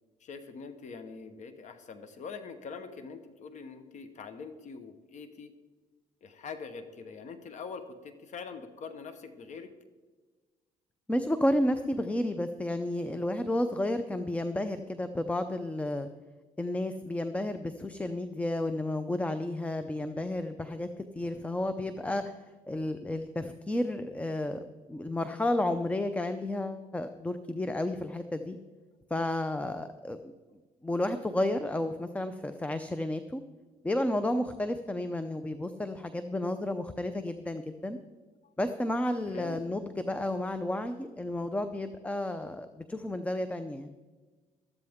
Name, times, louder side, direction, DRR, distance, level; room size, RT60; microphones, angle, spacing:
voice 1, 0.2-5.5 6.2-9.7 27.1-27.2 30.2-30.3 37.1-37.2 38.4-38.5 39.3-39.6, left 5 dB, 55° left, 9 dB, 1.2 m, -44 dB
voice 2, 11.1-16.1 16.6-20.9 21.2-22.3 22.7-24.6 24.9-28.6 29.1-30.3 30.8-33.4 33.8-38.0 38.6-43.9, left 1 dB, 10° left, 9 dB, 0.6 m, -32 dB
13.5 x 13.0 x 3.6 m, 1.3 s
cardioid pair, 105°, 15 cm